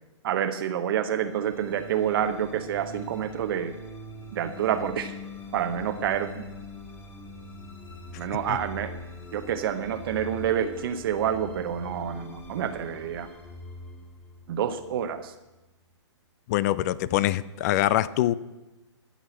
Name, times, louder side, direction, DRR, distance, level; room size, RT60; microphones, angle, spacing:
voice 1, 0.2-3.7 4.3-5.2 5.5-6.5 8.1-8.9 9.3-13.3 14.5-15.3, right 9 dB, 50° right, 8 dB, 0.8 m, -28 dB
sound 1, 1.2-15.6, left 1 dB, 10° left, 2.1 m, -43 dB
voice 2, 16.5-18.3, left 14 dB, 35° left, 19 dB, 0.4 m, -24 dB
14.0 x 6.3 x 7.8 m, 1.0 s
hypercardioid pair, 135°, 15 cm